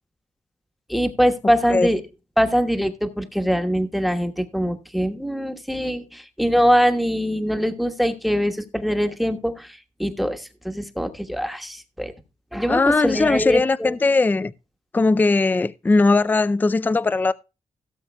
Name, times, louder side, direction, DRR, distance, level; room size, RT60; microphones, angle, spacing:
voice 1, 0.9-2.0 2.4-12.1 12.5-13.9, equal, ahead, 1.2 m, -23 dB
voice 2, 12.7-14.5 14.9-17.3, left 3 dB, 15° left, 0.4 m, -19 dB
17.0 x 7.4 x 2.2 m
wide cardioid pair, 135°, 12 cm